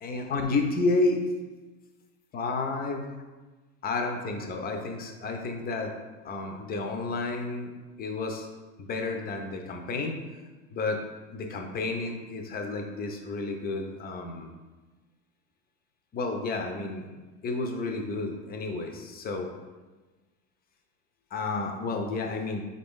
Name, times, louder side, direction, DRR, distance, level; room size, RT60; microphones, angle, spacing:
voice 1, 0.0-1.2 2.3-3.0 3.8-5.9 6.2-7.7 8.0-8.5 8.8-10.2 10.7-11.0 11.3-14.5 16.1-17.1 17.4-19.5 21.3-22.7, left 3 dB, 25° left, 3 dB, 0.4 m, -31 dB
3.8 x 2.6 x 3.6 m, 1.2 s
supercardioid pair, 115°, 40 cm